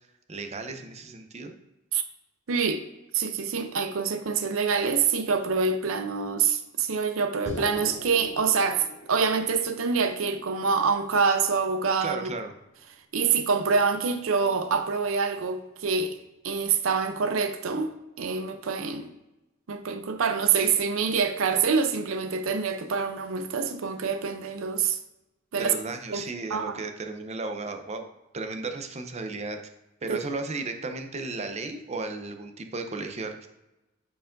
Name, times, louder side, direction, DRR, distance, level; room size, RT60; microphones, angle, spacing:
voice 1, 0.3-1.5 12.0-12.5 25.6-28.1 28.3-29.6 30.0-33.5, right 3 dB, 30° right, 6 dB, 0.6 m, -34 dB
voice 2, 2.5-2.8 3.1-12.3 13.1-16.2 16.4-17.9 18.2-19.1 19.7-25.0 25.5-25.7 26.1-26.2 26.5-26.7 30.1-30.2, right 5 dB, 75° right, 8 dB, 0.5 m, -26 dB
sound 1, 7.5-11.8, left 1 dB, 35° left, 1.9 m, -41 dB
9.0 x 4.7 x 2.5 m, 0.97 s
head